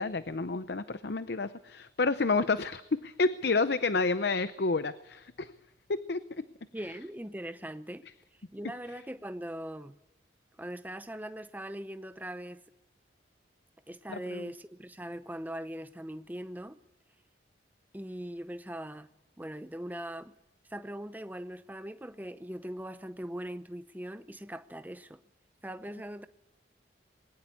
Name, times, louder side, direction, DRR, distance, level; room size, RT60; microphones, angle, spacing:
voice 1, 0.0-5.5 5.9-6.4 14.1-14.5, left 3 dB, 60° left, 13 dB, 0.7 m, -30 dB
voice 2, 6.7-8.1 8.5-10.0 10.6-12.6 13.9-16.8 17.9-19.1 19.4-20.4 20.7-25.2 25.6-26.3, right 1 dB, 10° right, 11 dB, 0.7 m, -40 dB
21.0 x 18.5 x 8.3 m, 0.94 s
head